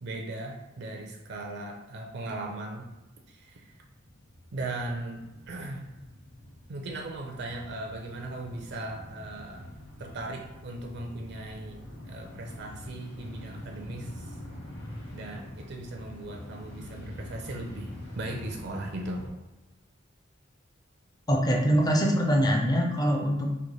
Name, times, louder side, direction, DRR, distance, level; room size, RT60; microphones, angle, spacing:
voice 1, 0.0-2.9 3.3-3.7 4.5-5.9 6.7-9.7 10.0-14.3 15.1-19.2, right 2 dB, 60° right, 2 dB, 0.4 m, -38 dB
sound 1, 3.0-19.3, left 1 dB, 60° left, 0.9 m, -44 dB
voice 2, 21.3-23.5, equal, 20° left, 2 dB, 0.4 m, -23 dB
3.1 x 2.1 x 3.8 m, 1.0 s
head